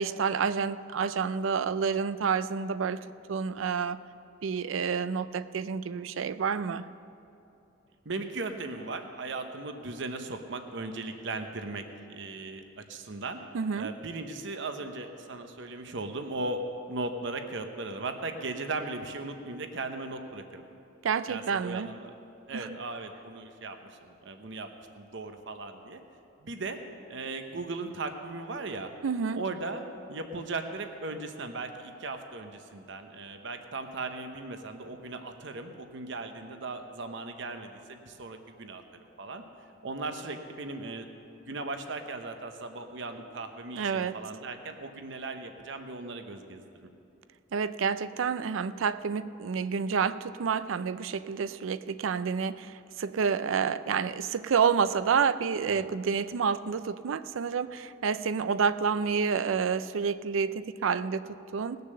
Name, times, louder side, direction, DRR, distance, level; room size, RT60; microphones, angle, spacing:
voice 1, 0.0-3.0 3.3-4.0 4.4-6.9 13.5-13.9 21.0-21.9 22.5-22.8 29.0-29.4 43.8-44.2 47.5-61.8, right 6 dB, 85° right, 14 dB, 0.4 m, -29 dB
voice 2, 8.0-13.4 13.8-16.6 16.9-20.6 21.3-22.1 22.5-24.7 24.9-26.0 26.4-26.8 27.1-28.9 29.3-29.8 30.1-38.8 39.2-39.4 39.8-41.1 41.4-46.9 55.7-55.9, right 3 dB, 65° right, 6 dB, 0.9 m, -37 dB
19.0 x 6.7 x 6.7 m, 2.7 s
head